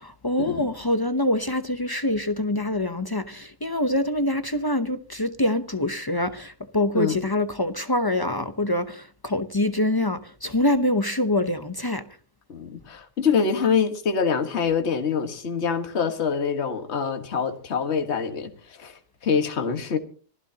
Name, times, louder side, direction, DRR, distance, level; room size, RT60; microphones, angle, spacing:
voice 1, 0.0-12.0, left 1 dB, 30° left, 0.4 m, -25 dB
voice 2, 12.5-20.0, left 6 dB, 45° left, 1.7 m, -25 dB
25.0 x 15.5 x 2.8 m
omnidirectional pair, 1.7 m